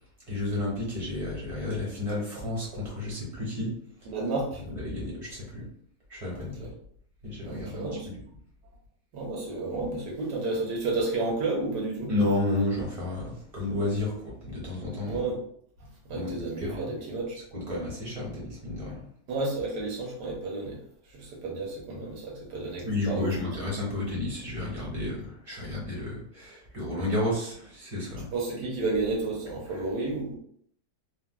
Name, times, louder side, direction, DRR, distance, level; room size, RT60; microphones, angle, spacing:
voice 1, 0.3-3.7 4.6-5.7 6.1-6.7 7.2-8.2 12.1-15.2 16.1-16.9 17.5-19.0 22.8-28.3, left 2 dB, 25° right, -5 dB, 1.1 m, -31 dB
voice 2, 4.1-4.6 6.3-6.7 7.4-8.1 9.1-12.1 15.0-15.4 16.1-17.4 19.3-20.8 21.1-23.3 28.3-30.4, right 3 dB, 85° right, -2 dB, 1.5 m, -31 dB
3.2 x 2.5 x 2.2 m, 0.64 s
omnidirectional pair, 1.8 m